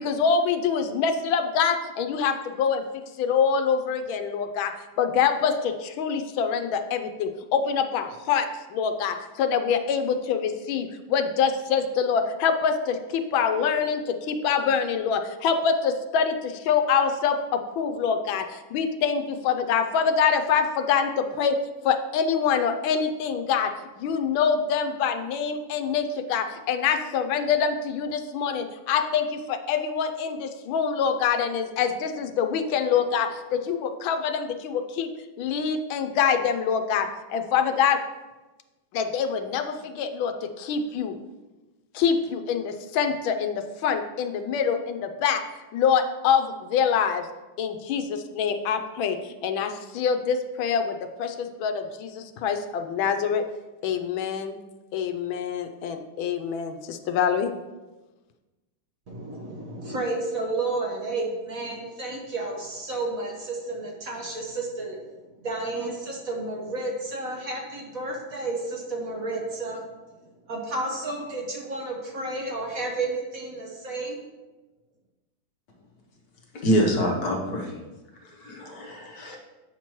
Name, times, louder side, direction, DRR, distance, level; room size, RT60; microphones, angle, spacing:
voice 1, 0.0-2.8 3.2-4.7 5.0-8.5 8.7-21.5 21.8-23.7 24.0-35.1 35.4-38.0 38.9-41.1 41.9-45.4 45.7-47.3 47.6-53.4 53.8-54.5 54.9-57.5, left 6 dB, 80° left, 7 dB, 1.4 m, -25 dB
voice 2, 59.1-65.0 65.4-69.8 70.5-74.2, right 2 dB, 50° right, -1 dB, 1.2 m, -31 dB
voice 3, 76.5-77.8 78.2-79.4, equal, 60° left, 0 dB, 1.3 m, -26 dB
8.2 x 5.9 x 3.0 m, 1.1 s
omnidirectional pair, 2.2 m